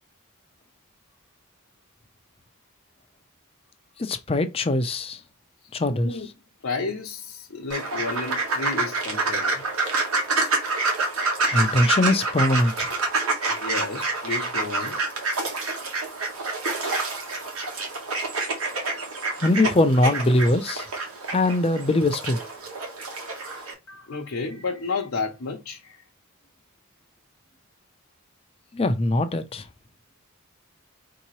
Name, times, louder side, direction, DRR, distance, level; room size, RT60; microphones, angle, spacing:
voice 1, 4.0-5.2 5.7-6.1 11.5-12.9 19.4-20.9 21.3-22.4 28.7-29.7, left 1 dB, 25° left, 0.5 m, -22 dB
voice 2, 5.9-6.3 6.6-9.7 13.5-15.0 23.9-26.0, left 4 dB, 65° left, 0.7 m, -32 dB
sound 1, 7.7-23.7, right 3 dB, 75° right, 1.2 m, -27 dB
4.5 x 2.8 x 3.0 m
head